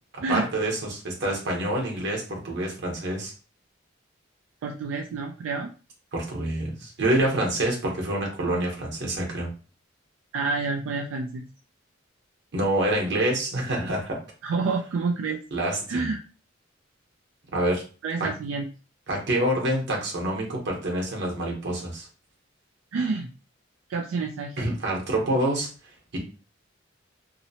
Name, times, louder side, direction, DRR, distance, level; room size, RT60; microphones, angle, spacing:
voice 1, 0.1-3.3 6.1-9.5 12.5-14.2 15.5-16.1 17.5-17.8 18.2-18.3 19.1-22.1 24.6-25.7 26.1-26.2, right 1 dB, 60° right, -1 dB, 0.9 m, -27 dB
voice 2, 4.6-5.7 10.3-11.4 14.4-15.4 15.9-16.2 18.0-18.7 22.9-23.3 23.9-24.6, right 4 dB, 85° right, 3 dB, 0.3 m, -28 dB
2.8 x 2.0 x 2.7 m, 0.35 s
head